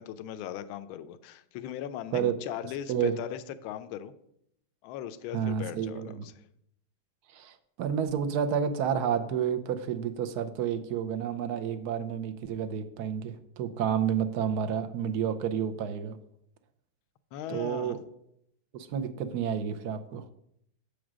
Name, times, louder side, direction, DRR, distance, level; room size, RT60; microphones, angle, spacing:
voice 1, 0.0-4.1 4.8-6.1 17.3-18.0, left 10 dB, 80° left, 11 dB, 1.4 m, -38 dB
voice 2, 5.3-6.3 7.3-16.2 17.5-18.0 18.7-20.3, right 8 dB, 70° right, 8 dB, 1.0 m, -30 dB
7.7 x 5.1 x 6.1 m, 0.73 s
omnidirectional pair, 2.3 m